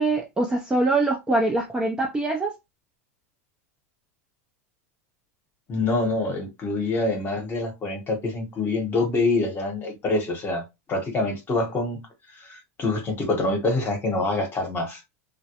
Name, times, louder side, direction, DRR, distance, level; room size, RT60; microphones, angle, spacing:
voice 1, 0.0-2.5, right 2 dB, 10° right, 0.4 m, -23 dB
voice 2, 5.7-15.0, left 2 dB, 25° left, 0.9 m, -26 dB
2.2 x 2.0 x 2.8 m
supercardioid pair, 130°, 8 cm